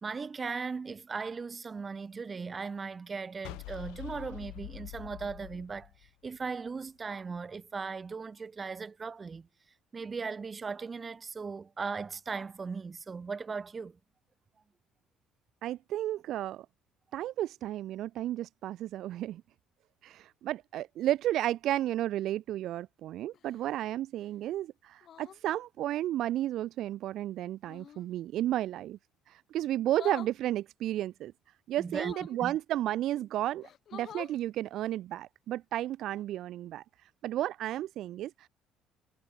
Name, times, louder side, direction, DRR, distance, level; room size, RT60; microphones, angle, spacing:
voice 1, 0.0-5.9 6.2-9.5 9.9-14.0 31.8-32.1 32.4-32.6, right 5 dB, 30° right, 1.0 m, -38 dB
sound 1, 3.4-6.7, left 28 dB, 75° left, 6.3 m, -45 dB
voice 2, 15.6-16.7 17.1-19.4 20.0-29.0 29.3-31.3 31.7-36.8 37.2-38.5, right 13 dB, 60° right, 0.6 m, -33 dB
sound 2, 23.3-23.8 25.0-25.4 27.6-28.1 29.9-30.4 31.9-32.4 33.2-33.3 33.6-34.4 36.0-36.2, left 9 dB, 55° left, 4.1 m, -47 dB
hypercardioid pair, 55°, 0 cm